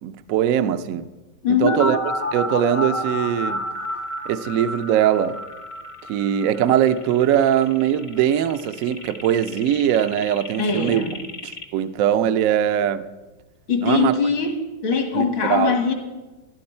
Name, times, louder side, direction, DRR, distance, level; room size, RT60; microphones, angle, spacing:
voice 1, 0.0-1.1 1.6-2.0 2.3-3.6 4.3-5.4 6.1-11.0 11.4-13.0 13.8-14.1 15.1-15.8, right 10 dB, 85° right, 11 dB, 0.7 m, -21 dB
voice 2, 1.4-1.8 10.6-11.2 13.7-14.5 14.8-15.9, left 6 dB, 80° left, 5 dB, 2.4 m, -21 dB
sound 1, 1.7-11.6, left 1 dB, 55° left, 0.3 m, -31 dB
15.0 x 11.5 x 4.4 m, 1.2 s
omnidirectional pair, 2.1 m